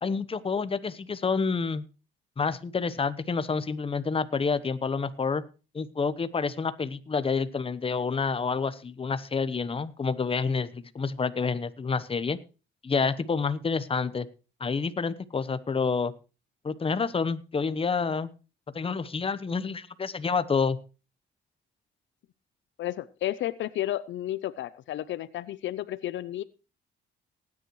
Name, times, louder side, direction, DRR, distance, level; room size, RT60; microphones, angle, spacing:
voice 1, 0.0-1.8 2.4-5.4 5.7-12.4 12.8-14.3 14.6-16.1 16.6-18.3 18.7-20.8, left 5 dB, 30° left, 14 dB, 1.0 m, -28 dB
voice 2, 22.8-26.4, left 13 dB, 70° left, 16 dB, 0.5 m, -32 dB
19.0 x 9.6 x 3.1 m, 0.33 s
cardioid pair, 90°, 20 cm